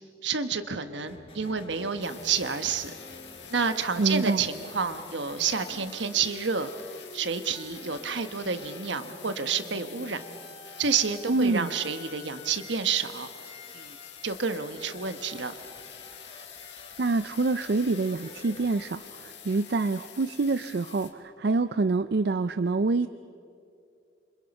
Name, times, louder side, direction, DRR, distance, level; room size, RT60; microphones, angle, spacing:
voice 1, 0.2-2.9 3.5-6.7 7.1-10.2 10.8-13.3 13.7-14.0 14.2-15.5, right 5 dB, 75° right, 9 dB, 1.2 m, -29 dB
sound 1, 1.1-18.9, left 2 dB, 30° left, 2.0 m, -49 dB
sound 2, 2.0-21.1, left 8 dB, 65° left, 1.9 m, -47 dB
voice 2, 4.0-4.4 11.3-11.7 17.0-23.1, right 3 dB, 60° right, 12 dB, 0.5 m, -26 dB
28.0 x 26.0 x 5.4 m, 2.5 s
head